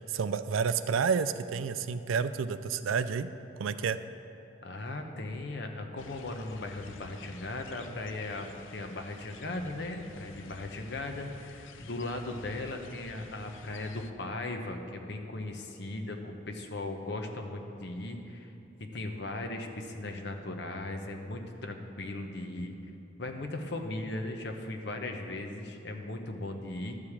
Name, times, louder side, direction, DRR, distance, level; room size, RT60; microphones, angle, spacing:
voice 1, 0.1-3.3 3.6-4.0, right 6 dB, 85° right, 13 dB, 0.4 m, -30 dB
voice 2, 4.6-18.5 18.8-22.8 23.2-27.0, left 2 dB, 60° left, 4 dB, 0.9 m, -38 dB
sound 1, 6.0-14.1, left 4 dB, 80° left, 0.5 m, -51 dB
12.5 x 4.9 x 7.2 m, 3.0 s
head